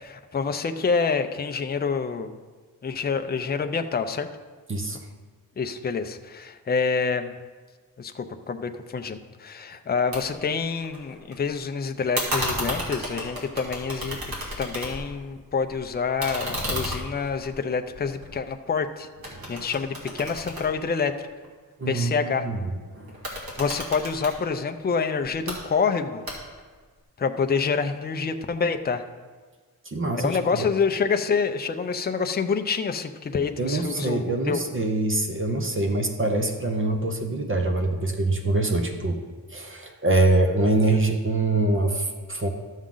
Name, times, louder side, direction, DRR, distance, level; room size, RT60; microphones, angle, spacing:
voice 1, 0.0-2.3 2.8-4.3 5.6-7.3 8.0-14.2 14.6-19.1 19.5-21.1 21.9-22.5 23.6-26.2 27.2-29.0 30.2-34.6, left 5 dB, 30° left, 7 dB, 0.4 m, -27 dB
voice 2, 4.7-5.1 19.3-19.7 21.8-22.6 22.9-23.3 29.8-30.6 33.6-39.2 39.5-42.5, right 2 dB, 35° right, 4 dB, 0.7 m, -24 dB
sound 1, 10.1-10.2 10.5-11.3 12.1-15.2 15.6-18.8 19.2-21.5 23.1-24.4 25.2-25.6 26.3-26.7, equal, 80° right, 2.4 m, -32 dB
12.5 x 7.3 x 3.8 m, 1.4 s
wide cardioid pair, 180°, 35 cm